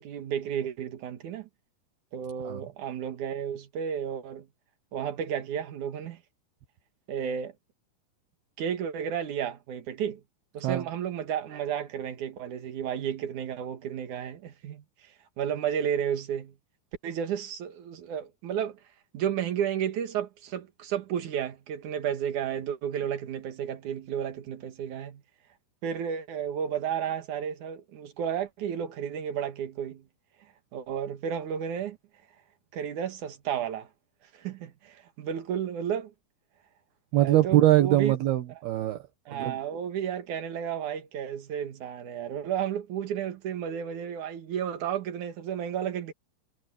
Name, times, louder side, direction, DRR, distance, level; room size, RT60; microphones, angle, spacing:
voice 1, 0.0-1.5 2.1-4.5 4.9-6.2 7.1-7.6 8.6-10.2 10.5-16.5 17.0-18.8 19.1-25.2 25.8-30.1 30.7-32.0 32.7-33.9 34.3-36.1 37.2-38.1 39.3-46.1, right 8 dB, 55° right, 2.8 m, -32 dB
voice 2, 37.1-39.6, right 14 dB, 75° right, 3.3 m, -23 dB
omnidirectional pair, 4.7 m